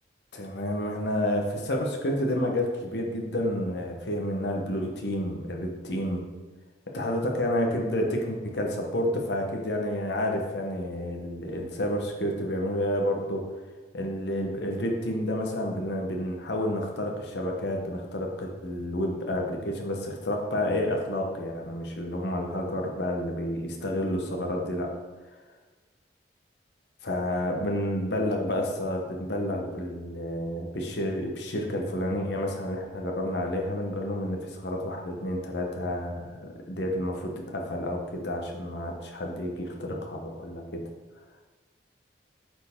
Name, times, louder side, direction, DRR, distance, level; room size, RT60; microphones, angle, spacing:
voice 1, 0.3-6.2 6.9-13.5 13.9-24.9 27.0-40.8, left 1 dB, 70° left, 1 dB, 1.1 m, -30 dB
8.8 x 4.5 x 3.6 m, 1.3 s
head